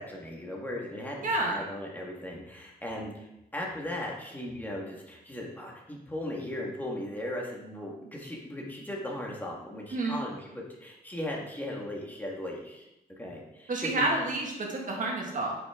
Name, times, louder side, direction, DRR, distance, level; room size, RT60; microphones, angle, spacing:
voice 1, 0.0-3.3 3.5-12.9 13.2-14.1, left 1 dB, 10° left, -2 dB, 1.8 m, -37 dB
voice 2, 1.2-1.6 9.9-10.2 13.7-15.6, right 2 dB, 55° right, -1 dB, 1.8 m, -29 dB
7.9 x 5.8 x 3.7 m, 0.90 s
wide cardioid pair, 115°, 16 cm